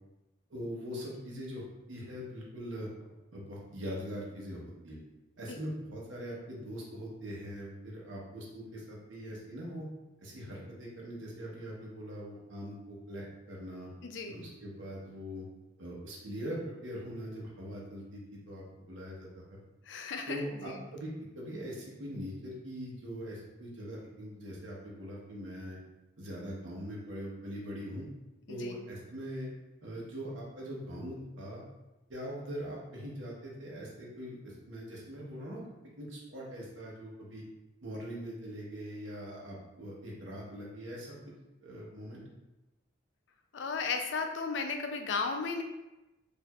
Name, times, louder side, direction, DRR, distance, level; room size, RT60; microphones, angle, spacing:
voice 1, 0.5-1.6 1.9-2.9 3.3-5.0 5.4-9.9 10.2-13.9 14.3-15.5 15.8-19.4 20.3-25.8 26.2-28.0 28.5-29.5 29.8-31.6 32.1-35.6 36.0-37.4 37.8-41.3 41.6-42.2, equal, 85° right, -3 dB, 0.9 m, -42 dB
voice 2, 14.0-14.4 19.9-20.8 28.5-28.7 43.5-45.6, left 4 dB, 70° left, 5 dB, 0.4 m, -35 dB
4.5 x 2.6 x 2.3 m, 1.0 s
head